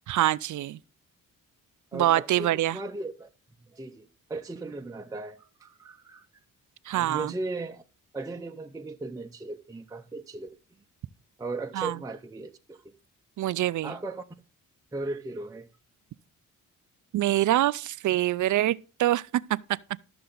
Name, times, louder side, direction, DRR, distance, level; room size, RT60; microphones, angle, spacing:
voice 1, 0.1-0.8 1.9-2.8 6.9-7.3 11.8-12.0 13.4-13.9 17.1-19.6, right 14 dB, 65° right, 0.4 m, -25 dB
voice 2, 1.9-3.3 3.7-6.3 6.9-7.8 8.1-10.5 11.4-12.8 13.8-14.2 14.9-15.7, right 2 dB, 10° right, 0.5 m, -37 dB
13.0 x 6.8 x 3.9 m
wide cardioid pair, 130°, 33 cm